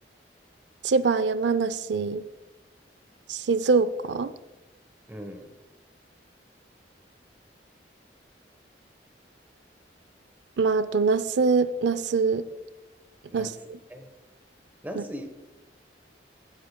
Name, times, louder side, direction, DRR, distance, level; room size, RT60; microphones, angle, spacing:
voice 1, 0.8-2.2 3.3-4.3 10.6-12.4 13.3-13.5 15.0-15.1, right 4 dB, 75° right, 14 dB, 0.5 m, -23 dB
voice 2, 5.1-5.5 13.3-13.5 13.9-14.1 14.8-15.3, equal, 10° right, 5 dB, 1.0 m, -38 dB
15.5 x 8.1 x 2.2 m, 1.1 s
head